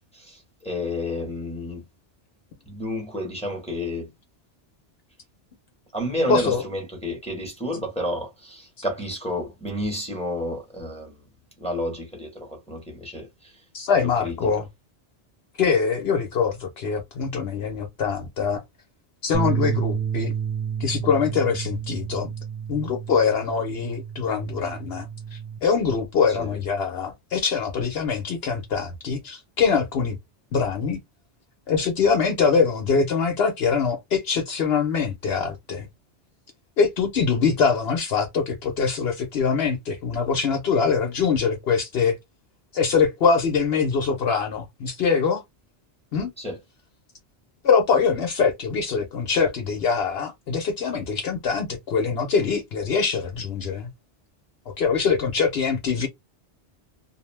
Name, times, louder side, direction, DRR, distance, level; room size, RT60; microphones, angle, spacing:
voice 1, 0.0-1.8 2.7-4.1 5.9-11.3 11.6-13.6 14.0-14.4 26.4-26.6 46.4-46.6, left 1 dB, 5° left, 0.9 m, -30 dB
voice 2, 6.3-6.6 13.7-14.7 15.6-18.6 19.2-20.3 20.8-22.3 22.7-25.1 25.3-30.2 30.5-31.0 31.7-35.9 36.8-42.2 42.7-45.4 46.1-46.3 47.6-53.9 54.8-56.1, left 5 dB, 65° left, 0.8 m, -23 dB
sound 1, 19.3-25.6, right 7 dB, 75° right, 0.9 m, -30 dB
2.6 x 2.0 x 3.0 m
omnidirectional pair, 1.2 m